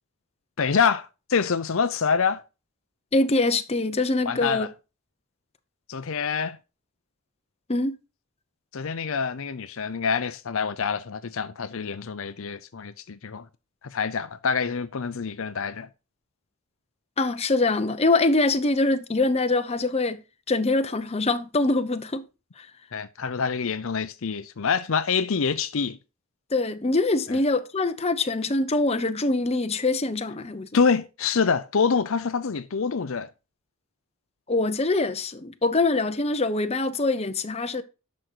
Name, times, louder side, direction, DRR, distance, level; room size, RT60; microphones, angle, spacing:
voice 1, 0.6-2.4 4.3-4.7 5.9-6.6 8.7-13.5 13.8-15.9 22.9-26.0 27.3-27.4 30.7-33.3, left 5 dB, 60° left, 0.6 m, -26 dB
voice 2, 3.1-4.7 7.7-8.0 17.2-20.2 20.5-22.2 22.6-22.7 26.5-30.7 34.5-37.8, left 2 dB, 25° left, 0.8 m, -24 dB
10.5 x 6.4 x 4.6 m
head